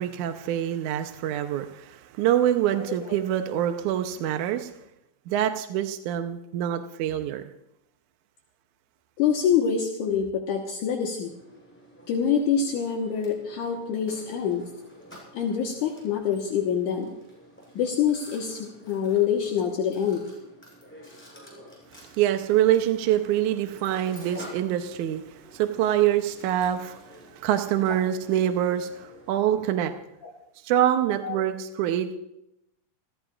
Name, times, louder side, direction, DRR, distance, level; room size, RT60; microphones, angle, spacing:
voice 1, 0.0-4.7 5.3-7.4 22.1-29.9 30.6-32.2, right 11 dB, 75° right, 6 dB, 2.0 m, -25 dB
voice 2, 9.2-11.3 12.1-14.6 15.3-17.1 17.8-20.2 30.2-30.3 31.2-31.4, left 7 dB, 65° left, 0 dB, 2.7 m, -25 dB
Mechanisms, 11.2-29.4, equal, 5° left, 7.8 m, -50 dB
28.5 x 16.0 x 2.5 m, 0.85 s
omnidirectional pair, 4.0 m